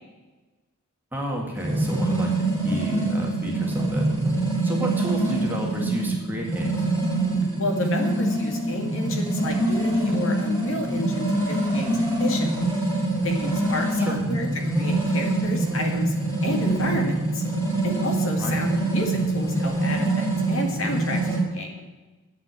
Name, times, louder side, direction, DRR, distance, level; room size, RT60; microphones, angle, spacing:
voice 1, 1.1-2.3 2.6-4.1 4.6-6.9 14.0-14.2 18.4-18.6, right 1 dB, 10° right, -1 dB, 1.9 m, -31 dB
sound 1, 1.6-21.4, right 2 dB, 10° left, 4.4 m, -24 dB
voice 2, 7.6-12.7 13.2-14.5 14.8-16.1 16.4-17.4 17.8-21.2 21.5-21.7, left 2 dB, 65° left, 2 dB, 2.1 m, -30 dB
8.7 x 7.4 x 8.8 m, 1.2 s
head